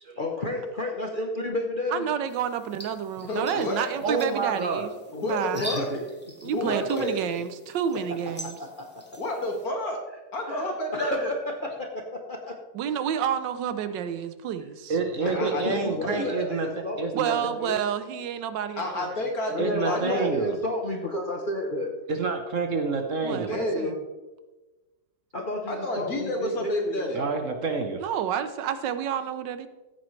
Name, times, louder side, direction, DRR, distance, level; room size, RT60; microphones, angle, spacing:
voice 1, 0.2-2.0 5.5-6.0 6.4-7.2 8.4-8.9 10.5-12.6 15.2-17.8 19.5-21.9 25.3-27.3, left 1 dB, 40° left, 1 dB, 0.9 m, -32 dB
voice 2, 1.9-5.7 6.4-8.6 12.7-15.0 17.1-19.1 23.2-23.9 28.0-29.7, right 8 dB, 85° right, 11 dB, 1.4 m, -29 dB
sound 1, 2.3-9.7, equal, 5° left, 1.7 m, -44 dB
voice 3, 3.2-3.9 5.1-5.9 6.5-7.2 9.2-10.0 10.3-11.3 15.2-16.8 18.8-20.3 23.2-24.0 25.7-27.2, left 1 dB, 55° left, 1 dB, 2.4 m, -30 dB
voice 4, 4.0-4.9 14.9-16.7 17.0-17.3 19.6-20.5 22.1-23.5 27.1-28.0, right 4 dB, 50° right, 4 dB, 1.2 m, -28 dB
14.5 x 8.5 x 3.2 m, 1.1 s
omnidirectional pair, 1.9 m